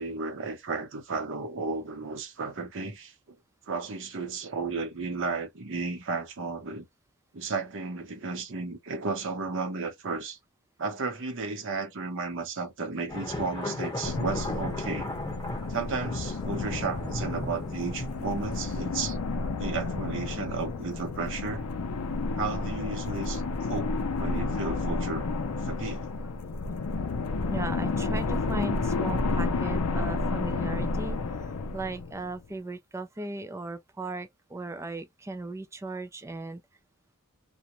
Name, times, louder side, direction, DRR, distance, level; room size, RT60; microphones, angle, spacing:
voice 1, 0.0-3.4 3.7-6.9 7.3-10.4 10.8-15.1 15.7-19.2 19.6-21.6 22.4-26.0, right 4 dB, 55° right, 0.8 m, -33 dB
sound 1, 13.1-18.8, left 1 dB, 15° left, 0.9 m, -36 dB
sound 2, 14.0-32.5, left 3 dB, 80° left, 0.5 m, -31 dB
voice 2, 27.5-36.6, right 2 dB, 10° right, 0.3 m, -37 dB
2.3 x 2.1 x 2.9 m
head